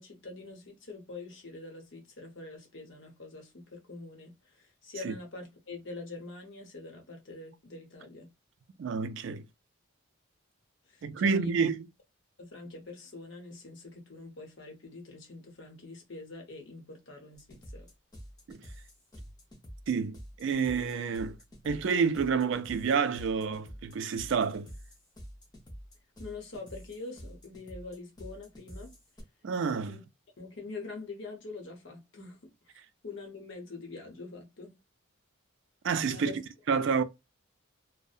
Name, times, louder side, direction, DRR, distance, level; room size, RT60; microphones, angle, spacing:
voice 1, 0.0-8.3 10.9-11.6 12.4-17.9 26.2-28.9 29.9-30.0 30.4-32.8 33.0-34.8 36.1-36.4, left 3 dB, 60° left, 0.8 m, -45 dB
voice 2, 8.8-9.4 11.0-11.8 18.5-18.6 19.9-21.4 21.6-24.7 29.4-30.0 35.8-36.4 36.7-37.0, right 5 dB, 60° right, 0.3 m, -29 dB
sound 1, 17.3-29.2, equal, 20° left, 0.6 m, -48 dB
2.6 x 2.0 x 2.3 m
head